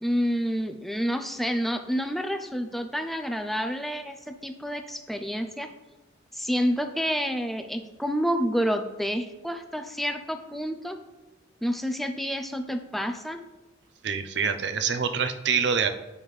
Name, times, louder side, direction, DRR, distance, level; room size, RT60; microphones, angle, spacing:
voice 1, 0.0-5.7 6.3-11.0 11.6-13.4, equal, ahead, 7 dB, 0.4 m, -29 dB
voice 2, 14.0-15.9, right 6 dB, 60° right, 9 dB, 0.6 m, -25 dB
9.3 x 5.3 x 3.2 m, 1.1 s
head